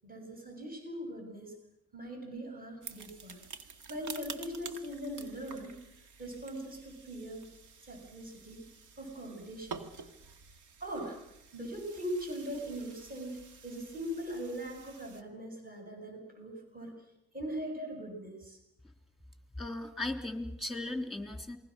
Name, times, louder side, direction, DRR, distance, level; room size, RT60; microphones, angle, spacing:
voice 1, 0.0-1.5 1.9-3.4 3.9-5.7 6.2-7.5 7.9-8.6 9.0-9.8 10.8-11.2 11.5-13.3 13.6-17.0 17.3-18.6, equal, 30° right, 2 dB, 6.9 m, -40 dB
sound 1, 2.8-15.2, right 5 dB, 80° right, 1.9 m, -49 dB
voice 2, 19.6-21.6, left 2 dB, ahead, 5 dB, 3.5 m, -37 dB
28.0 x 21.0 x 6.4 m, 0.84 s
cardioid pair, 90°, 30 cm